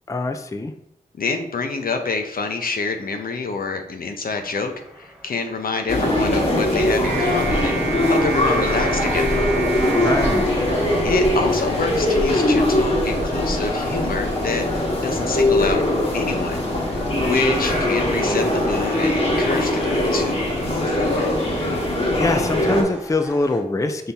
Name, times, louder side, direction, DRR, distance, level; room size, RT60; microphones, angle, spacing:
voice 1, 0.1-0.7 9.9-10.5 22.2-24.1, left 2 dB, 20° left, 7 dB, 0.4 m, -23 dB
voice 2, 1.2-9.4 11.0-15.8 16.1-16.6 17.2-20.4 20.7-21.3, left 4 dB, 65° left, 5 dB, 0.6 m, -27 dB
sound 1, 4.3-23.6, equal, 10° right, 1.4 m, -39 dB
sound 2, 5.9-22.8, left 1 dB, 40° left, 1.3 m, -21 dB
sound 3, 7.0-11.5, right 4 dB, 70° right, 0.5 m, -29 dB
5.6 x 2.7 x 3.5 m, 0.77 s
cardioid pair, 45°, 16 cm